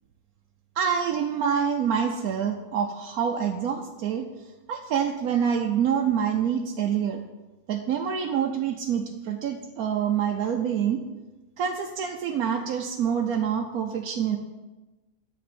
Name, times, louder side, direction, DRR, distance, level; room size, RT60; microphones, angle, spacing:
voice 1, 0.8-4.2 4.7-7.2 7.7-11.0 11.6-14.4, right 8 dB, 90° right, 2 dB, 1.2 m, -26 dB
9.4 x 4.3 x 7.1 m, 1.1 s
omnidirectional pair, 1.5 m